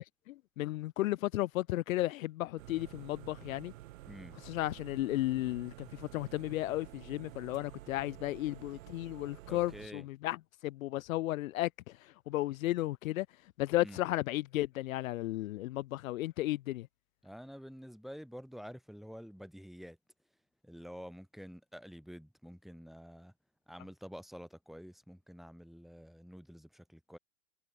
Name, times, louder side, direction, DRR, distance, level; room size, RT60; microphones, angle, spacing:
voice 1, 0.0-3.7 4.4-13.3 13.6-16.9, left 16 dB, 70° left, 1.0 m, -34 dB
sound 1, 2.6-9.9, right 16 dB, 65° right, 3.4 m, -51 dB
voice 2, 4.1-4.4 9.5-10.1 13.8-14.0 17.2-20.0 20.6-23.3 23.7-27.2, equal, ahead, 2.2 m, -49 dB
hypercardioid pair, 115°, 43 cm